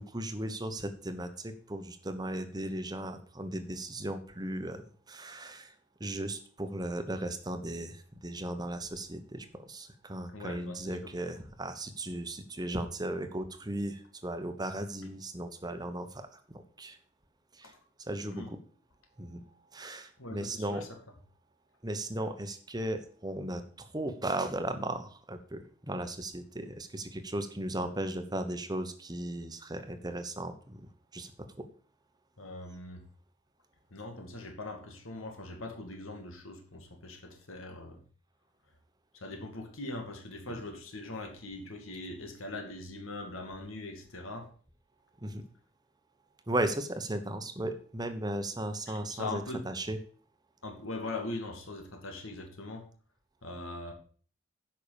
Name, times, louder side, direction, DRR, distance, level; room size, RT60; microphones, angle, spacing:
voice 1, 0.0-4.8 5.1-5.7 6.0-17.0 17.5-17.7 18.0-18.6 19.2-19.4 19.7-20.9 21.8-30.9 31.1-31.3 31.6-31.7 40.5-40.6 45.2-45.4 46.5-50.0, right 1 dB, 20° right, 1.1 m, -36 dB
voice 2, 10.3-11.1 17.6-17.8 18.2-18.5 20.2-21.0 32.4-33.0 33.9-38.0 39.1-44.5 48.9-49.6 50.6-52.9 53.4-53.9, left 2 dB, 80° left, 2.3 m, -41 dB
9.9 x 6.0 x 7.0 m
head